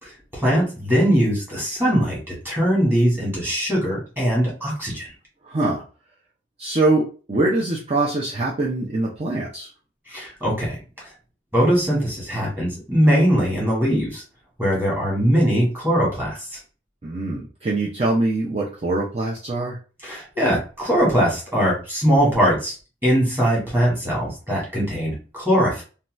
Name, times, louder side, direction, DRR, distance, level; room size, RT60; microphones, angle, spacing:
voice 1, 0.0-5.1 10.1-10.8 11.5-14.2 14.6-16.6 20.0-22.8 23.0-25.8, equal, 10° right, -5 dB, 1.4 m, -21 dB
voice 2, 5.5-5.8 6.6-9.7 17.0-19.8, right 2 dB, 30° right, -4 dB, 0.5 m, -23 dB
2.7 x 2.3 x 3.0 m, 0.36 s
head